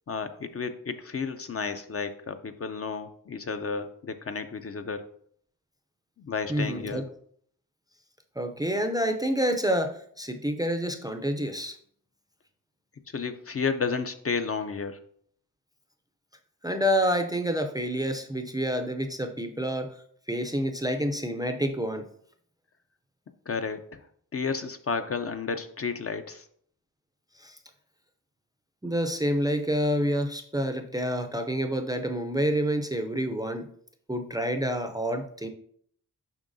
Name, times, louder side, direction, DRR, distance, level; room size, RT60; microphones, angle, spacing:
voice 1, 0.1-5.1 6.2-7.1 13.1-15.0 23.5-24.0 24.3-26.4, left 5 dB, 40° left, 8 dB, 0.5 m, -32 dB
voice 2, 6.5-7.0 8.4-11.8 16.6-19.9 20.3-22.0 27.4-27.6 28.8-33.7 34.1-35.5, equal, 10° right, 5 dB, 0.4 m, -28 dB
7.2 x 5.5 x 2.6 m, 0.62 s
wide cardioid pair, 125°, 35 cm